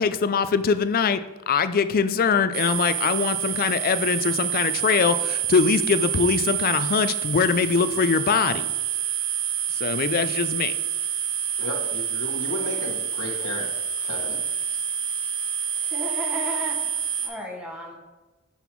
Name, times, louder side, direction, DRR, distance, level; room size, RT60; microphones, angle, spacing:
voice 1, 0.0-8.6 9.8-10.7, left 5 dB, 45° left, 12 dB, 0.4 m, -22 dB
sound 1, 2.5-17.3, right 9 dB, 70° right, 1.2 m, -28 dB
voice 2, 11.6-13.7 14.0-14.4, left 2 dB, 75° left, -1 dB, 1.3 m, -33 dB
voice 3, 15.8-18.0, left 1 dB, 5° right, -1 dB, 1.1 m, -34 dB
6.0 x 5.4 x 4.5 m, 1.1 s
head